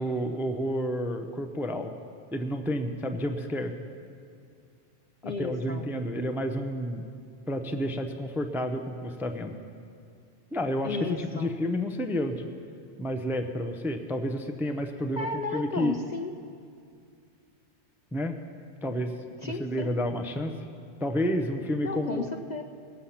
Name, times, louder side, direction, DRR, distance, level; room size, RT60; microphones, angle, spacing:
voice 1, 0.0-1.9 2.3-3.7 5.2-7.0 7.5-9.6 10.5-12.5 13.0-15.3 15.5-15.9 18.1-18.4 18.8-19.2 19.4-20.5 21.0-22.3, equal, 5° right, 6 dB, 0.4 m, -30 dB
voice 2, 5.2-5.9 10.8-11.5 15.2-16.3 19.4-19.9 21.8-22.6, left 4 dB, 50° left, 5 dB, 0.5 m, -34 dB
20.0 x 7.6 x 5.7 m, 2.3 s
omnidirectional pair, 1.2 m